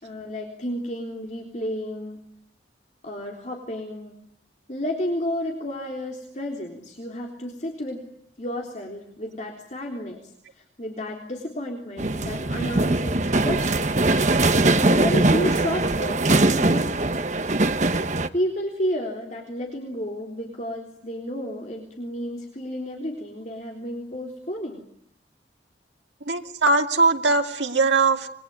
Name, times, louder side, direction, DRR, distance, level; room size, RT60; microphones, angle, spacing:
voice 1, 0.0-2.2 3.0-4.2 4.7-8.0 8.4-13.9 14.8-16.2 16.5-17.0 18.3-24.8, left 1 dB, 40° left, 1 dB, 3.6 m, -31 dB
sound 1, 12.0-18.3, right 2 dB, 40° right, 1.1 m, -21 dB
voice 2, 26.3-28.3, right 3 dB, 80° right, 4 dB, 2.5 m, -20 dB
26.5 x 22.5 x 9.5 m, 0.68 s
head